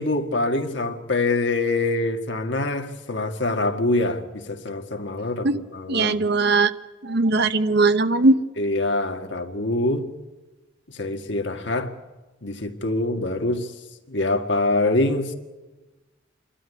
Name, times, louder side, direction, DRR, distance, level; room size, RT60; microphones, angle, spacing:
voice 1, 0.0-6.2 8.6-10.1 10.9-11.9 12.4-13.7 14.1-15.3, left 2 dB, 65° left, 5 dB, 2.0 m, -25 dB
voice 2, 5.9-6.7 7.0-8.4, right 3 dB, 60° right, 12 dB, 1.0 m, -19 dB
27.5 x 12.5 x 9.5 m, 1.2 s
head